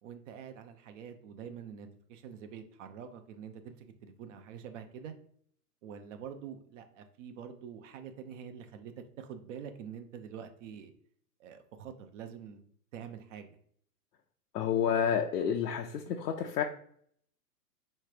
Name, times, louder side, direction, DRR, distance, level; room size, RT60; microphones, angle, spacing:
voice 1, 0.0-5.1 5.8-10.9 11.4-12.6 12.9-13.6, right 7 dB, 50° right, 7 dB, 0.7 m, -46 dB
voice 2, 14.5-16.6, left 8 dB, 80° left, 2 dB, 0.7 m, -29 dB
3.4 x 3.2 x 4.8 m, 0.62 s
hypercardioid pair, 125°, 47 cm